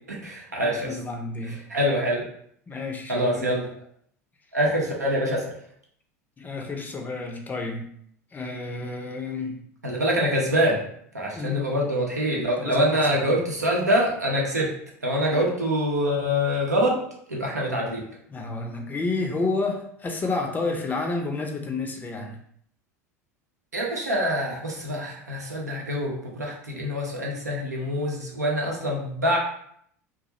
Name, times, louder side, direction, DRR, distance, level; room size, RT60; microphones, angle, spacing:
voice 1, 0.1-0.9 1.4-2.2 3.1-3.7 4.5-5.5 9.8-10.8 11.1-14.7 15.0-17.0 17.3-18.0 23.7-29.4, equal, 85° right, -2 dB, 0.6 m, -25 dB
voice 2, 0.6-1.6 2.7-3.5 6.4-7.9 8.3-9.6 11.4-11.6 12.6-13.3 15.3-15.5 18.3-22.4, left 3 dB, 20° left, 2 dB, 0.5 m, -30 dB
2.3 x 2.1 x 2.8 m, 0.67 s
figure-of-eight pair, 75°, 9 cm